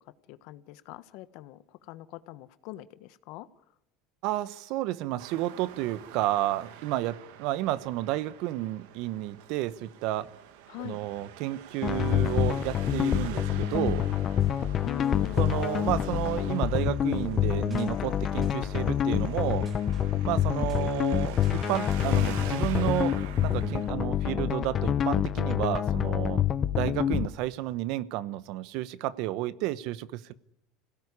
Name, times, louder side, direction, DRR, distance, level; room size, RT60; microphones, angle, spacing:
voice 1, 0.3-3.5 10.7-11.0 14.8-15.4 20.5-20.8, left 16 dB, 65° left, 14 dB, 1.3 m, -42 dB
voice 2, 4.2-10.3 10.8-14.0 15.4-19.7 20.2-23.1 23.4-26.4 26.8-30.3, right 15 dB, 60° right, 17 dB, 1.1 m, -31 dB
Traffic noise roadway noise, 5.2-23.9, right 8 dB, 85° right, 2.2 m, -46 dB
sound 1, 11.8-27.3, left 10 dB, 30° left, 0.9 m, -27 dB
sound 2, 12.0-22.5, right 1 dB, 20° right, 4.3 m, -52 dB
26.5 x 17.0 x 9.9 m, 0.88 s
cardioid pair, 145°, 0 cm